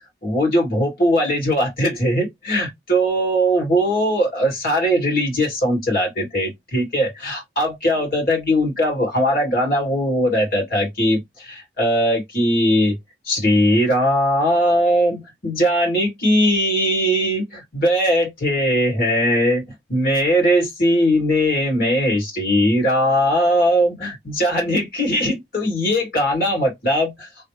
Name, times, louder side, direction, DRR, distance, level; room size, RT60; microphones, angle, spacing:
voice 1, 0.2-13.0 13.3-27.3, equal, 55° left, 1.9 m, -20 dB
3.3 x 2.1 x 3.1 m
head